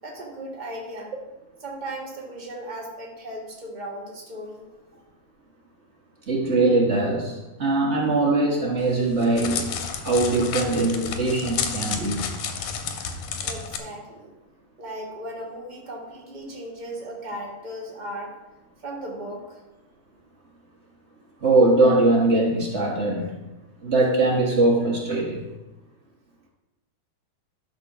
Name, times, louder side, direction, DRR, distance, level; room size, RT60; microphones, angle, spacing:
voice 1, 0.0-1.1 1.6-4.7 13.4-14.3 14.8-18.3 18.8-19.6, right 1 dB, 25° right, -2 dB, 0.9 m, -36 dB
voice 2, 6.3-12.3 21.4-23.3 23.8-25.4, right 2 dB, 85° right, -2 dB, 0.6 m, -21 dB
Crackle, 8.8-13.8, left 6 dB, 90° left, 2.5 m, -31 dB
12.0 x 4.4 x 6.0 m, 1.0 s
omnidirectional pair, 3.5 m